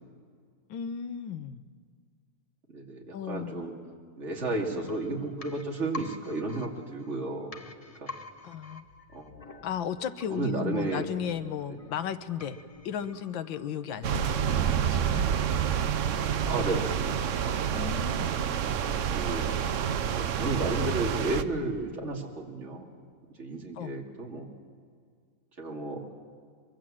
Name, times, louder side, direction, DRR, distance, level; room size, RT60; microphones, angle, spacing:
voice 1, 0.7-1.6 3.1-3.6 8.4-8.8 9.6-12.6 12.8-15.2 17.7-18.3 23.7-23.9, left 8 dB, 85° left, 11 dB, 1.7 m, -35 dB
voice 2, 2.7-3.7 4.2-7.6 8.0-8.1 9.1-9.7 10.3-11.1 11.7-11.8 16.4-17.2 17.7-17.8 18.2-18.4 19.2-19.5 20.1-22.9 23.4-24.5 25.6-26.1, right 2 dB, 35° right, 0 dB, 3.1 m, -33 dB
sound 1, 4.4-14.1 14.4-14.5, left 3 dB, 30° left, 0.8 m, -48 dB
sound 2, 14.0-21.4, right 8 dB, 60° right, 0.8 m, -28 dB
23.5 x 23.0 x 7.6 m, 2.1 s
omnidirectional pair, 2.1 m